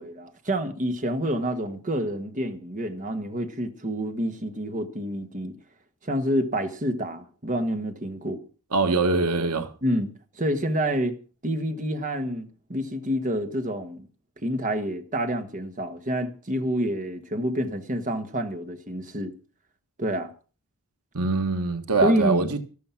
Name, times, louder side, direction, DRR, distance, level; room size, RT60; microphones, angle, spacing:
voice 1, 0.0-5.5 6.0-8.4 9.8-10.1 10.4-11.1 11.4-14.1 14.4-19.3 20.0-20.3 22.0-22.6, equal, 35° right, 1.6 m, -28 dB
voice 2, 8.7-9.7 21.1-22.6, right 3 dB, 90° right, 1.6 m, -23 dB
13.5 x 13.0 x 5.9 m
head